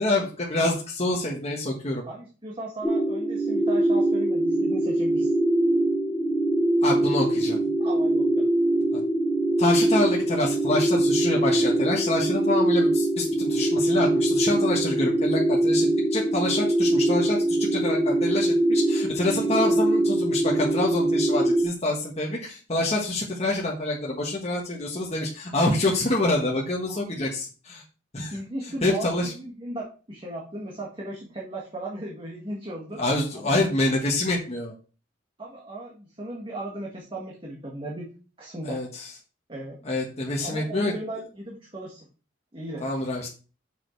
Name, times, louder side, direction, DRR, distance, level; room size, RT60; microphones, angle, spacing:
voice 1, 0.0-2.0 6.8-7.6 8.9-9.0 9.6-27.8 28.1-28.4 28.8-29.3 33.0-34.7 38.6-39.1 39.8-40.9 42.8-43.3, left 2 dB, 35° left, -2 dB, 1.4 m, -26 dB
voice 2, 2.0-5.3 7.8-8.4 26.9-27.2 28.3-29.1 29.4-33.0 33.3-33.6 35.4-38.1 38.4-38.8 39.5-39.8 40.4-42.1 42.5-42.9, right 1 dB, 25° right, -3 dB, 1.7 m, -36 dB
sound 1, 2.8-21.7, right 1 dB, 5° left, 1.0 m, -23 dB
6.6 x 6.0 x 4.5 m, 0.36 s
head